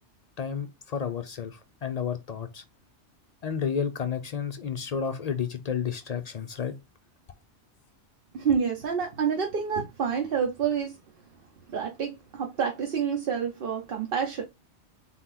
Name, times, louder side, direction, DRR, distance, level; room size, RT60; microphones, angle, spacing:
voice 1, 0.4-2.6 3.4-6.8, left 7 dB, 65° left, 0.4 m, -31 dB
voice 2, 8.3-11.0 11.7-14.4, right 7 dB, 55° right, 0.9 m, -28 dB
4.1 x 2.9 x 3.8 m
omnidirectional pair, 1.2 m